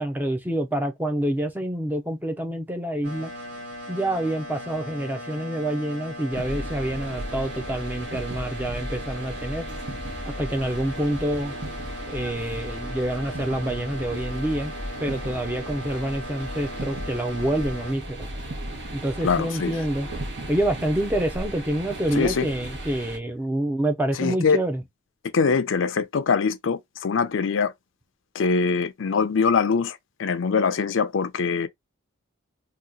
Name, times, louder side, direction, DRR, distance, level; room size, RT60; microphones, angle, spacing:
voice 1, 0.0-3.3 3.9-9.6 10.3-11.5 12.1-14.7 15.0-18.3 18.9-20.1 20.5-24.8, right 1 dB, 10° right, 0.5 m, -27 dB
sound 1, 3.0-17.9, equal, 75° right, 1.2 m, -38 dB
sound 2, 6.3-23.2, right 1 dB, 60° right, 1.0 m, -36 dB
voice 2, 19.2-19.8 22.1-22.5 24.2-24.6 25.3-27.7 28.3-31.7, left 5 dB, 70° left, 0.5 m, -23 dB
2.8 x 2.3 x 3.7 m
head